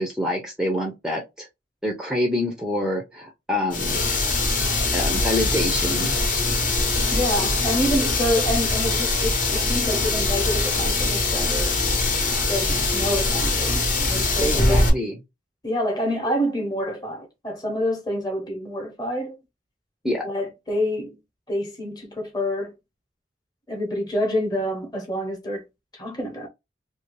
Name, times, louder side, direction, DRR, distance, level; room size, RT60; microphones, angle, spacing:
voice 1, 0.0-1.5 1.8-4.0 4.9-6.2 14.4-15.1 20.0-20.2, left 1 dB, 5° right, 0.6 m, -26 dB
sound 1, 3.7-14.9, left 3 dB, 45° left, 1.0 m, -22 dB
voice 2, 7.1-11.8 12.4-14.9 15.6-19.4 20.2-21.2 21.5-22.7 23.7-25.6 25.9-26.5, equal, 20° left, 1.0 m, -27 dB
2.8 x 2.7 x 3.2 m
head